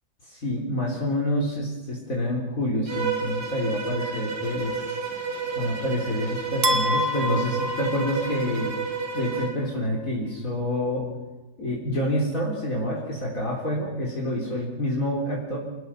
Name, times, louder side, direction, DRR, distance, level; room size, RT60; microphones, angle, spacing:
voice 1, 0.3-4.8 5.6-8.7 9.1-11.1 11.6-15.6, left 1 dB, 55° left, -3 dB, 4.3 m, -27 dB
Bowed string instrument, 2.9-9.6, right 5 dB, 75° right, 4.1 m, -31 dB
sound 1, 6.6-8.8, left 1 dB, 30° right, 1.4 m, -27 dB
27.5 x 19.0 x 5.8 m, 1.1 s
omnidirectional pair, 1.7 m